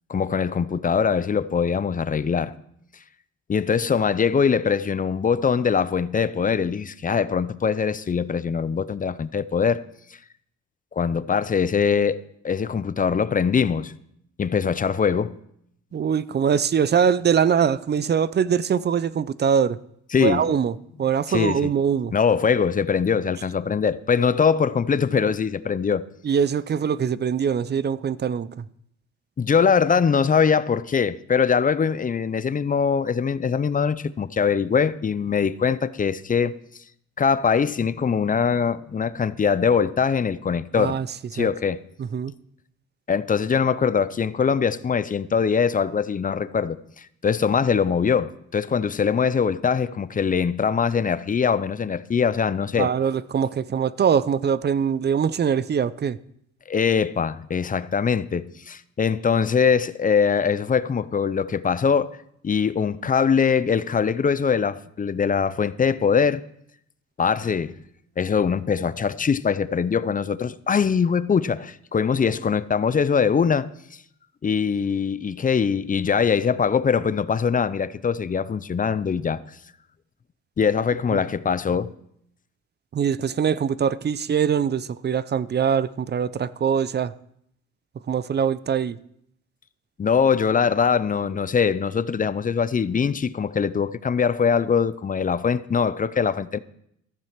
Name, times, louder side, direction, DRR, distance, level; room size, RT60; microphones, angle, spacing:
voice 1, 0.1-2.5 3.5-9.8 10.9-12.2 12.4-13.9 14.4-15.3 20.1-20.4 21.3-21.7 22.1-26.0 29.4-36.6 37.2-41.0 41.3-41.8 43.1-52.9 56.7-62.1 62.4-66.4 67.2-67.7 68.2-74.0 74.4-79.4 80.6-81.9 90.0-96.6, left 6 dB, 25° left, 0.5 m, -22 dB
voice 2, 15.9-19.8 20.2-22.1 26.2-28.6 40.8-41.1 41.3-41.5 42.0-42.3 52.7-56.2 82.9-87.1 88.1-89.0, right 7 dB, 35° right, 0.5 m, -23 dB
14.0 x 7.5 x 5.9 m
cardioid pair, 90°, 30 cm